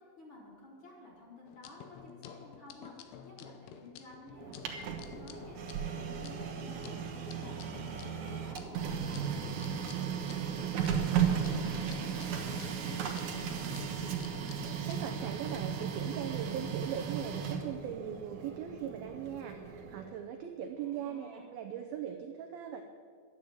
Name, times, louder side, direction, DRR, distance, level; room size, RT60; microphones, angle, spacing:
voice 1, 0.2-13.8 20.8-21.6, left 2 dB, 30° left, -5 dB, 3.7 m, -54 dB
sound 1, 1.5-15.0, left 8 dB, 75° left, 2.7 m, -51 dB
Printer, 4.3-20.1, right 7 dB, 65° right, 1.9 m, -35 dB
voice 2, 14.5-22.8, right 9 dB, 80° right, 4 dB, 2.1 m, -40 dB
11.5 x 10.5 x 8.5 m, 2.1 s
omnidirectional pair, 5.1 m